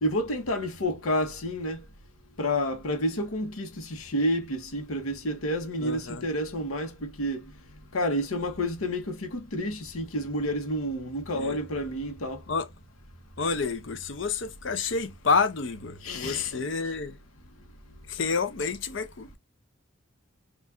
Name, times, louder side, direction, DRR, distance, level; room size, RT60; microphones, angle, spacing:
voice 1, 0.0-1.8 2.4-7.5 7.9-12.4 16.0-16.6, equal, 90° left, 1.0 m, -29 dB
voice 2, 5.8-6.2 11.3-11.6 12.5-12.7 13.4-17.2 18.1-19.4, left 5 dB, 60° left, 0.6 m, -29 dB
4.5 x 2.5 x 2.5 m
head